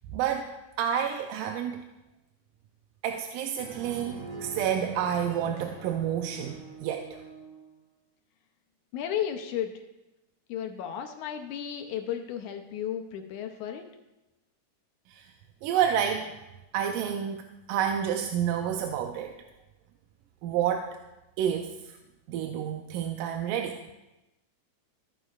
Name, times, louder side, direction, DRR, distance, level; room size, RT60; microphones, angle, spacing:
voice 1, 0.1-1.8 3.0-7.2 15.1-15.3 15.6-16.3 16.7-19.4 20.4-21.0 21.4-22.0 22.3-23.8, right 9 dB, 85° right, 5 dB, 2.2 m, -29 dB
sound 1, 3.6-7.7, right 4 dB, 70° right, 3.0 m, -44 dB
voice 2, 8.9-9.7 10.5-13.9, left 9 dB, 75° left, 5 dB, 2.0 m, -33 dB
14.5 x 9.0 x 2.4 m, 1.0 s
omnidirectional pair, 3.7 m